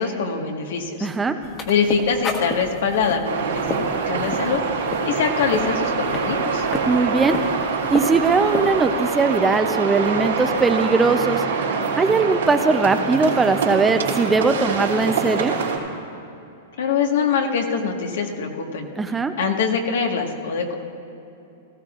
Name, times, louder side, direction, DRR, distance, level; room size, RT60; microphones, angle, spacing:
voice 1, 0.0-1.1 1.7-3.8 4.0-6.7 16.8-18.9 19.4-20.7, left 5 dB, 75° left, 3 dB, 1.6 m, -23 dB
voice 2, 1.0-1.4 6.9-7.4 7.9-11.4 11.9-15.5 19.0-19.3, right 4 dB, 15° right, 8 dB, 0.6 m, -20 dB
sound 1, 1.4-9.0, left 3 dB, 30° left, 1.5 m, -32 dB
sound 2, 3.2-15.8, right 5 dB, 85° right, 3.2 m, -25 dB
18.5 x 15.0 x 2.5 m, 2.7 s
hypercardioid pair, 120°, 0 cm